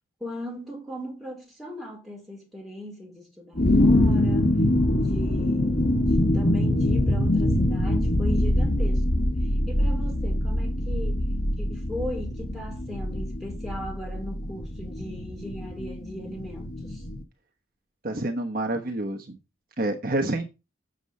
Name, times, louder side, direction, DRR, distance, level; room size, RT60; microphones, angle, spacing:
voice 1, 0.2-4.6 4.9-9.4 9.7-11.3 11.6-17.0, left 1 dB, ahead, 4.3 m, -38 dB
sound 1, 3.6-17.2, left 1 dB, 50° left, 1.4 m, -24 dB
voice 2, 18.0-19.4 19.8-20.5, right 1 dB, 45° right, 1.1 m, -28 dB
8.1 x 6.9 x 5.3 m
head